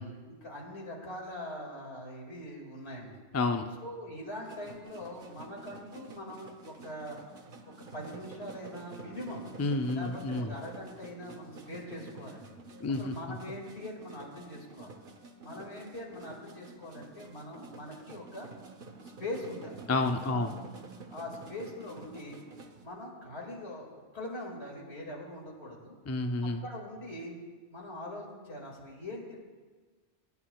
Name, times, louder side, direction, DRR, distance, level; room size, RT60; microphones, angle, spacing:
voice 1, 0.0-3.2 3.8-7.2 7.9-9.5 9.9-12.6 12.9-14.9 15.4-18.5 19.2-19.8 20.2-20.6 21.1-22.4 22.8-26.0 26.4-27.4 27.7-29.4, left 1 dB, 70° left, -1 dB, 2.5 m, -42 dB
voice 2, 3.3-3.6 9.6-10.5 12.8-13.1 19.9-20.5 26.1-26.6, left 2 dB, 25° left, 5 dB, 0.3 m, -29 dB
sound 1, 4.4-22.9, right 3 dB, 55° right, 1.0 m, -49 dB
25.5 x 9.5 x 2.3 m, 1.4 s
omnidirectional pair, 1.2 m